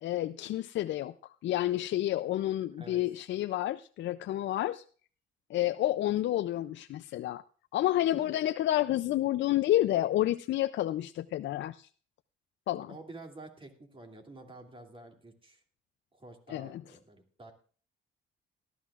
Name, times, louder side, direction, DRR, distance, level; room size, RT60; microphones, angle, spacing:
voice 1, 0.0-4.8 5.5-7.4 7.7-11.9 12.7-12.9 16.5-16.8, left 13 dB, 70° left, 10 dB, 0.5 m, -30 dB
voice 2, 12.9-15.6 16.1-17.5, right 2 dB, 25° right, 3 dB, 2.7 m, -49 dB
18.0 x 13.0 x 2.4 m, 0.42 s
cardioid pair, 90°, 20 cm